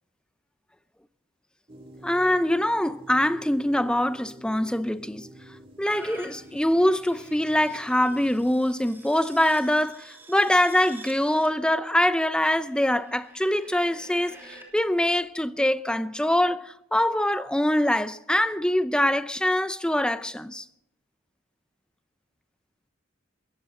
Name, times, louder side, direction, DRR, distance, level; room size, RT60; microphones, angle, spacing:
sound 1, 1.7-8.5, right 1 dB, 30° right, 2.0 m, -48 dB
voice 1, 2.0-5.3 5.8-14.4 14.7-20.6, left 1 dB, 5° left, 0.6 m, -24 dB
sound 2, 5.8-14.6 15.3-15.4, right 2 dB, 10° right, 3.2 m, -49 dB
21.5 x 15.5 x 3.8 m
head